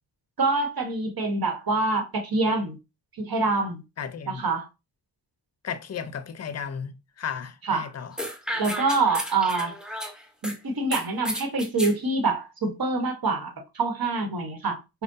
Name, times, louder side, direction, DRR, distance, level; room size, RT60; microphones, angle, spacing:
voice 1, 0.4-2.8 3.2-3.8 4.3-4.7 7.6-7.9 8.5-9.7 10.4-15.0, right 3 dB, 50° right, 1.3 m, -26 dB
voice 2, 4.0-4.5 5.6-8.2, left 7 dB, 35° left, 0.7 m, -34 dB
sound 1, 8.2-10.5 10.9-11.9, equal, ahead, 0.9 m, -32 dB
5.0 x 2.3 x 2.7 m
supercardioid pair, 45°, 45 cm